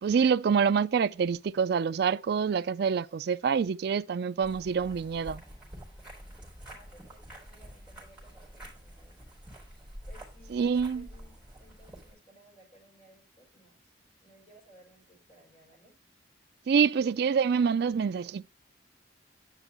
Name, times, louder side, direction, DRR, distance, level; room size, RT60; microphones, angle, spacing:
voice 1, 0.0-5.4 10.5-11.1 16.7-18.5, right 6 dB, 60° right, 0.3 m, -26 dB
sound 1, 4.4-12.1, equal, 5° right, 3.9 m, -48 dB
voice 2, 6.6-9.2 10.1-13.9 14.2-15.9, equal, 35° left, 4.7 m, -59 dB
10.0 x 5.4 x 2.9 m
head